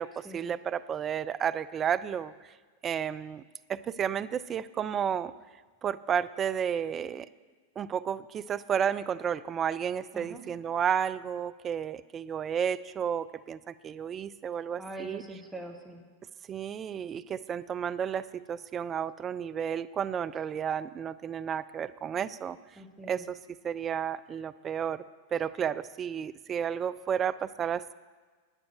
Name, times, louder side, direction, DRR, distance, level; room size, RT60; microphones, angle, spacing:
voice 1, 0.0-2.3 2.8-3.4 3.7-5.3 5.8-7.3 7.8-15.2 16.5-22.6 23.1-25.0 25.3-27.9, right 8 dB, 25° right, 15 dB, 0.3 m, -32 dB
voice 2, 14.8-16.0 22.7-23.2, right 1 dB, 10° right, 3 dB, 1.6 m, -43 dB
9.9 x 9.8 x 6.5 m, 1.4 s
figure-of-eight pair, 90°, 0 cm